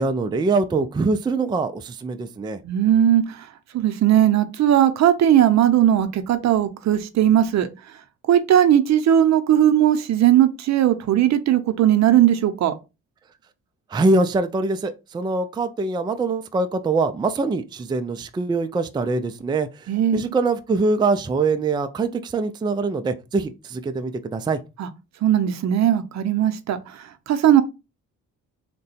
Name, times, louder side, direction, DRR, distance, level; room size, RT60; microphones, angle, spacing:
voice 1, 0.0-2.6 13.9-24.6, right 3 dB, 15° right, 0.4 m, -23 dB
voice 2, 2.6-3.4 3.7-7.7 8.3-12.7 19.9-20.2 24.8-24.9 25.2-27.6, right 11 dB, 60° right, 0.6 m, -18 dB
3.7 x 2.2 x 4.1 m
cardioid pair, 90°, 30 cm